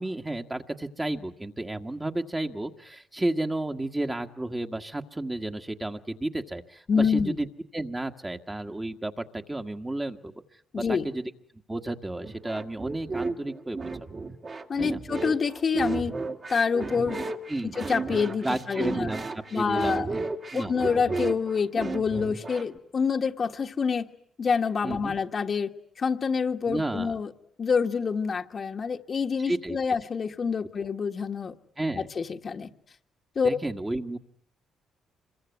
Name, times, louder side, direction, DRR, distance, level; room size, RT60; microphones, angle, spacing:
voice 1, 0.0-7.5 7.7-10.3 10.7-11.3 11.7-13.8 14.8-15.0 17.5-17.7 18.4-19.2 19.5-20.2 20.5-20.7 24.8-25.1 26.7-27.1 29.5-29.8 31.8-32.1 33.4-34.2, right 2 dB, 15° right, 4 dB, 1.6 m, -32 dB
voice 2, 6.9-7.4 10.7-11.1 14.7-16.1 16.5-17.3 17.6-19.1 19.5-20.1 20.5-24.1 24.4-25.7 26.0-27.3 27.6-31.5 31.9-32.7 33.3-33.6, left 5 dB, 45° left, 4 dB, 1.5 m, -27 dB
sound 1, 12.2-22.8, right 3 dB, 40° right, 2.1 m, -33 dB
26.0 x 22.5 x 9.3 m, 0.66 s
cardioid pair, 90°, 0 cm